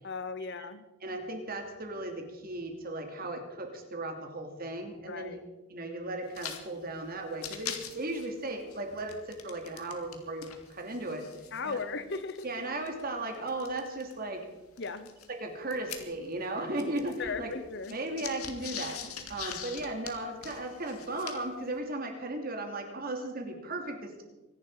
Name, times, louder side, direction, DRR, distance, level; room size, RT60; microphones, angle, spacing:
voice 1, 0.0-0.8 5.1-5.4 11.5-12.5 14.8-15.1 17.2-18.0, left 4 dB, 55° left, 12 dB, 1.0 m, -36 dB
voice 2, 1.0-5.4 5.7-11.3 11.6-11.8 12.4-14.5 15.4-17.5 17.9-24.2, right 2 dB, 45° right, 3 dB, 2.9 m, -36 dB
sound 1, 6.3-6.6 6.9-7.0 7.3-10.2 10.4-14.1 14.8-16.5 16.7-21.6, left 8 dB, 90° left, 2.1 m, -43 dB
24.5 x 11.0 x 5.0 m, 1.1 s
head